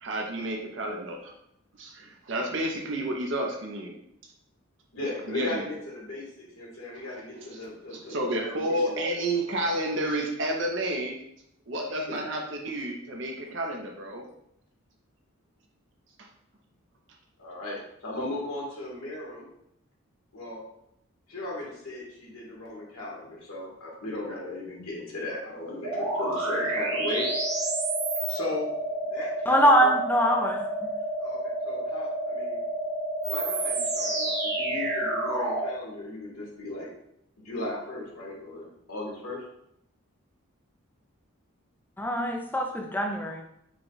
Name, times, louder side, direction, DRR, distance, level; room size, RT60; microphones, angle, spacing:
voice 1, 0.0-1.3 1.8-3.9 5.3-5.7 7.9-11.2 11.7-14.3, right 1 dB, 60° right, 1 dB, 0.7 m, -30 dB
voice 2, 4.9-9.2 12.1-12.2 17.4-19.5 20.3-20.6 21.3-27.3 28.3-28.7 29.0-29.9 31.2-32.6 33.3-36.9 37.4-39.4, left 2 dB, 90° left, -4 dB, 1.7 m, -37 dB
sound 1, 25.8-35.7, right 1 dB, 85° right, 1.2 m, -29 dB
voice 3, 29.5-30.9 42.0-43.4, equal, 10° left, 1 dB, 0.5 m, -23 dB
4.9 x 2.4 x 4.0 m, 0.77 s
head